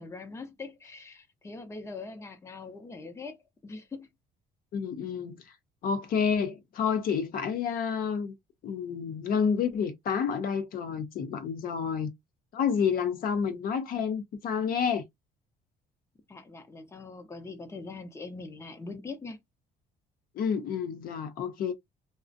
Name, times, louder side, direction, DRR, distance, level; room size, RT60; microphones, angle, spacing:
voice 1, 0.0-3.4 3.6-4.1 16.3-19.4, left 3 dB, 15° left, 0.6 m, -42 dB
voice 2, 4.7-5.4 5.8-8.3 8.6-12.1 12.5-15.0 20.4-21.7, left 6 dB, 60° left, 0.6 m, -29 dB
2.4 x 2.0 x 2.5 m
cardioid pair, 110°, 17 cm